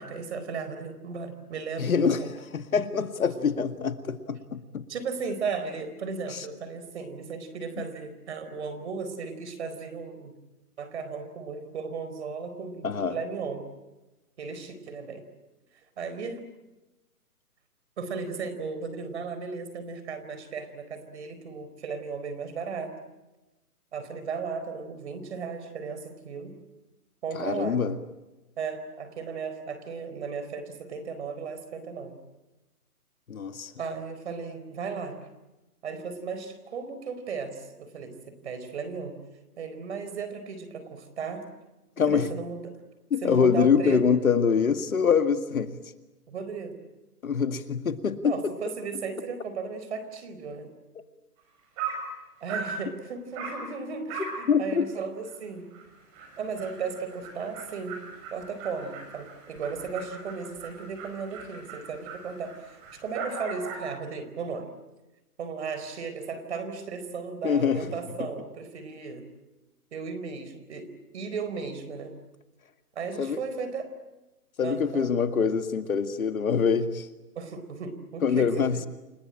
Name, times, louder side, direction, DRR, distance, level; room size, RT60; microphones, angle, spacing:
voice 1, 0.0-2.3 4.9-10.4 10.8-13.7 14.4-15.2 16.0-16.4 18.0-22.9 23.9-26.6 27.2-27.8 28.6-32.2 33.8-35.2 35.8-39.2 39.6-41.5 42.1-42.8 43.2-44.0 46.3-46.8 48.2-50.7 52.4-55.7 56.4-58.0 58.3-64.7 65.4-69.3 69.9-72.2 72.9-73.9 74.6-75.1 77.3-78.8, right 5 dB, 45° right, 10 dB, 4.4 m, -35 dB
voice 2, 1.8-2.2 2.5-4.9 6.3-6.4 12.8-13.2 27.4-28.0 33.3-33.7 42.0-42.3 43.1-45.8 47.2-48.3 54.5-54.9 67.4-67.9 73.2-73.4 74.6-77.1 78.2-78.9, left 6 dB, 60° left, 9 dB, 2.1 m, -24 dB
Dog, 51.4-51.5 51.8-52.1 52.5-52.8 53.3-53.6 54.1-54.4 54.8-54.9 55.3-55.4 55.7-55.8 56.1-63.9, right 5 dB, 20° right, 6.1 m, -39 dB
29.5 x 19.5 x 8.9 m, 1.1 s
hypercardioid pair, 160°, 46 cm